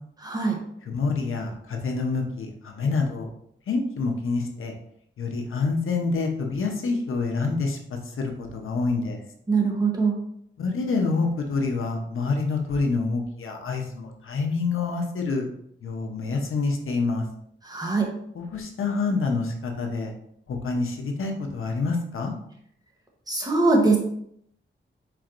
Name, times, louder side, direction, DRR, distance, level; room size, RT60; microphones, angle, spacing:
voice 1, 0.2-0.6 9.5-10.1 17.7-18.1 23.3-24.0, right 3 dB, 20° right, 0 dB, 0.8 m, -22 dB
voice 2, 0.9-3.3 3.7-4.7 5.2-9.2 10.6-15.5 15.8-17.2 18.3-20.1 20.5-22.3, left 4 dB, 90° left, 2 dB, 0.8 m, -27 dB
4.5 x 4.3 x 2.5 m, 0.70 s
wide cardioid pair, 160°, 21 cm